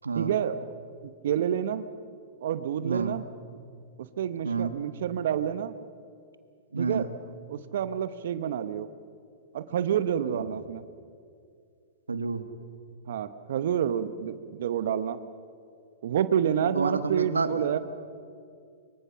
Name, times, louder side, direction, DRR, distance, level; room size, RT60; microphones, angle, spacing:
voice 1, 0.1-1.8 2.4-3.3 4.0-5.8 6.8-8.9 9.5-10.8 13.1-15.2 16.0-17.8, right 9 dB, 65° right, 13 dB, 0.9 m, -29 dB
voice 2, 2.8-3.2 4.4-4.7 6.7-7.1 10.3-10.4 12.1-12.4 16.7-17.8, right 4 dB, 90° right, 10 dB, 1.5 m, -29 dB
24.5 x 23.5 x 5.8 m, 2.3 s
hypercardioid pair, 110°, 0 cm